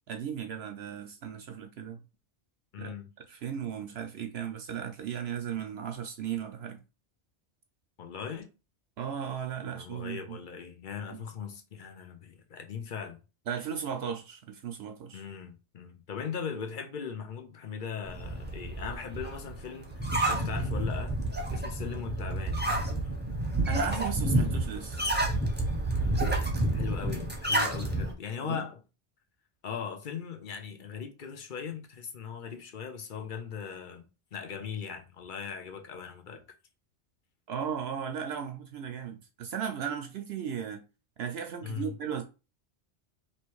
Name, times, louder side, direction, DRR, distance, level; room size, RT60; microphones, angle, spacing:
voice 1, 0.1-2.0 2.8-2.9 3.3-6.8 9.0-10.4 13.5-15.2 23.7-25.0 28.4-28.6 37.5-40.8 41.2-42.2, right 8 dB, 65° right, 0.8 m, -36 dB
voice 2, 2.7-3.1 8.0-8.5 9.7-13.2 15.1-21.1 21.5-23.1 26.7-28.8 29.6-36.4 41.6-41.9, left 7 dB, 50° left, 0.8 m, -39 dB
sound 1, 18.0-28.1, right 1 dB, 10° right, 0.8 m, -29 dB
3.1 x 3.0 x 4.6 m
omnidirectional pair, 1.2 m